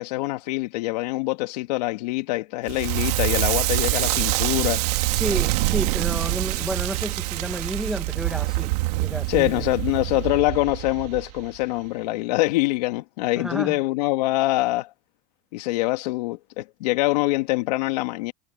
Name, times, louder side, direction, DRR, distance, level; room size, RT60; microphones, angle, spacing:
voice 1, 0.0-4.8 9.3-14.9 15.5-18.3, left 20 dB, 90° left, 1.9 m, -24 dB
Crackle, 2.7-11.6, right 21 dB, 75° right, 2.1 m, -25 dB
voice 2, 5.1-8.7 9.0-9.7 13.3-13.8, right 1 dB, ahead, 1.7 m, -31 dB
cardioid pair, 165°, 20 cm